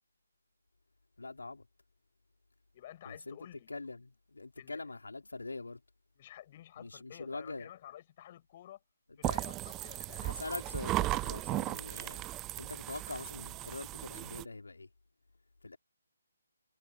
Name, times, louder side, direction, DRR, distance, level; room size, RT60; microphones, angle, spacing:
voice 1, 1.2-1.6 3.0-3.4 3.7-5.8 6.8-7.7 9.2-9.4 10.2-12.3 12.6-14.9 15.6-15.8, left 3 dB, 75° left, 3.2 m, -43 dB
voice 2, 2.7-3.7 4.5-4.8 6.1-8.8 9.2-10.4, left 12 dB, 35° left, 6.7 m, -52 dB
sound 1, 9.2-14.4, right 17 dB, 15° right, 0.8 m, -36 dB
figure-of-eight pair, 145°, 0 cm